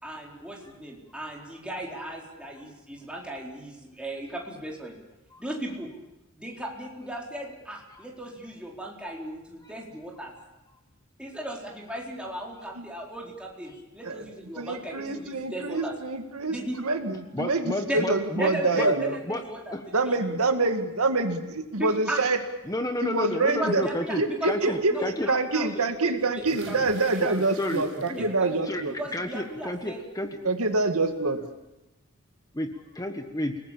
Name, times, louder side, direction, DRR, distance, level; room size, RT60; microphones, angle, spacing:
voice 1, 0.0-4.9 5.4-5.9 6.4-10.3 11.2-15.9 16.5-16.8 17.9-18.0 18.4-20.4 21.8-22.2 23.4-27.4 28.2-28.6 28.9-30.0, right 1 dB, 5° right, -2 dB, 4.4 m, -36 dB
voice 2, 14.6-19.2 19.9-22.4 23.0-23.8 24.2-25.0 25.3-29.0 30.4-31.4, right 3 dB, 85° right, 6 dB, 2.1 m, -26 dB
voice 3, 17.3-18.9 19.3-19.9 22.7-25.3 27.2-27.3 27.6-28.3 28.7-30.4 32.5-33.6, left 1 dB, 15° left, 6 dB, 1.3 m, -31 dB
sound 1, 26.5-28.6 29.0-29.4 30.8-30.9 31.3-31.4, right 3 dB, 60° right, 6.9 m, -46 dB
29.5 x 19.5 x 7.5 m, 1.0 s
head